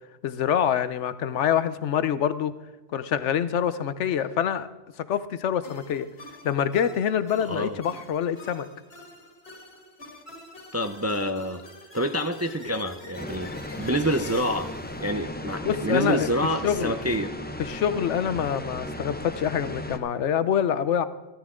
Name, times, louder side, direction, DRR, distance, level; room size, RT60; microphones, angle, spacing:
voice 1, 0.2-2.5 2.9-4.7 5.1-6.1 6.4-8.7 15.6-16.3 16.6-16.9 17.6-21.1, left 9 dB, 80° left, 13 dB, 1.0 m, -25 dB
sound 1, 5.6-16.0, left 2 dB, 60° left, 2.4 m, -47 dB
voice 2, 7.4-7.8 10.7-11.6 11.9-14.7 15.0-17.3, equal, 25° right, 8 dB, 0.4 m, -27 dB
sound 2, 13.2-20.0, left 1 dB, 10° left, 0.7 m, -36 dB
15.0 x 13.5 x 3.7 m, 1.2 s
omnidirectional pair, 1.2 m